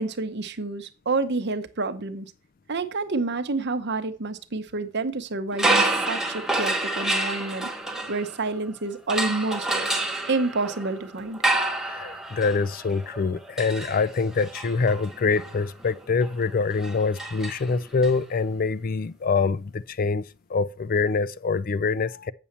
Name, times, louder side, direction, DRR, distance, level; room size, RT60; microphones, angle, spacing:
voice 1, 0.0-2.3 2.7-7.7 8.1-9.7 10.3-11.4, right 3 dB, 50° right, 0.9 m, -28 dB
sound 1, 5.5-8.6 9.1-18.1, right 2 dB, ahead, 1.0 m, -29 dB
voice 2, 11.8-20.2 20.5-22.3, left 4 dB, 40° left, 0.4 m, -25 dB
8.5 x 7.0 x 4.3 m
head